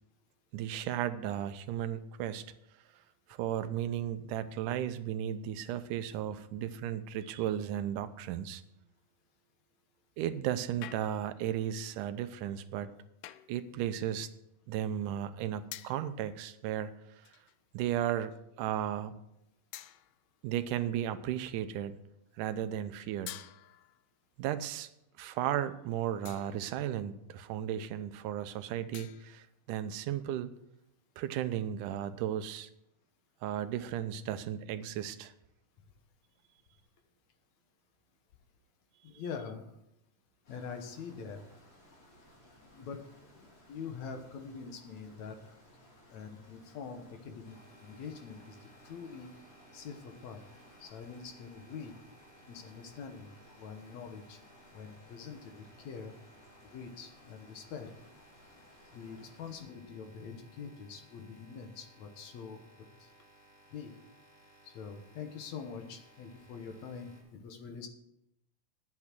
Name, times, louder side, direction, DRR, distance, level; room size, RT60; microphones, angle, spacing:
voice 1, 0.5-2.5 3.4-8.6 10.2-12.9 13.5-14.3 14.7-17.0 17.7-19.2 20.4-22.0 22.4-23.3 24.4-24.9 25.2-30.5 31.2-32.7 33.4-35.3, right 10 dB, 90° right, 11 dB, 2.3 m, -35 dB
sound 1, 10.8-11.4 13.2-13.6 15.7-16.1 17.2-17.7 18.3-18.5 19.7-20.3 23.3-24.1 26.3-26.7 28.9-29.5, left 14 dB, 85° left, 2.1 m, -48 dB
voice 2, 39.0-39.6 40.5-41.4 42.7-43.1 43.4-45.4 46.1-48.6 48.8-49.3 49.7-50.4 50.8-51.9 52.5-53.3 53.6-54.4 54.7-56.1 56.7-57.9 58.9-63.1 63.7-63.9 64.6-67.9, left 6 dB, 65° left, 5 dB, 2.3 m, -44 dB
sound 2, 40.4-59.6, left 1 dB, 45° left, 4.2 m, -60 dB
sound 3, 47.4-67.2, right 1 dB, 30° left, 4.6 m, -61 dB
11.0 x 8.4 x 6.0 m, 0.82 s
omnidirectional pair, 3.6 m